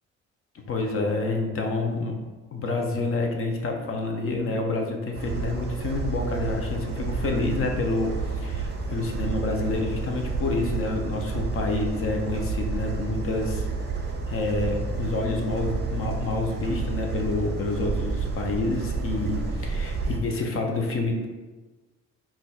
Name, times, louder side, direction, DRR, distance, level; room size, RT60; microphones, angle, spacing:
voice 1, 0.7-2.2 2.5-13.7 14.3-21.2, left 3 dB, 50° left, 2 dB, 0.5 m, -28 dB
sound 1, 5.2-20.2, right 4 dB, 35° right, 0.5 m, -30 dB
4.0 x 2.2 x 2.3 m, 1.3 s
cardioid pair, 95°, 29 cm